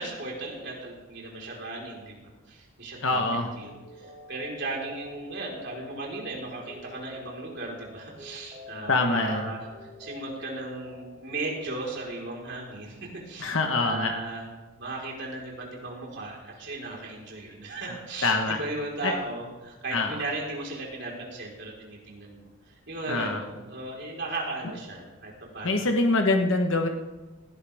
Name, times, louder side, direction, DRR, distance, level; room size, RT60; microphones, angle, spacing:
voice 1, 0.0-3.7 4.0-13.0 13.3-14.5 14.8-22.4 22.9-25.9, right 2 dB, 50° right, -2 dB, 4.4 m, -36 dB
voice 2, 3.0-3.5 8.9-9.5 13.4-14.1 18.2-18.6 19.0-19.1 19.9-20.2 23.1-23.4 25.6-26.9, left 3 dB, 60° left, 4 dB, 1.2 m, -24 dB
sound 1, 3.1-12.0, left 3 dB, 25° right, 3.7 m, -48 dB
19.0 x 17.0 x 3.6 m, 1.2 s
head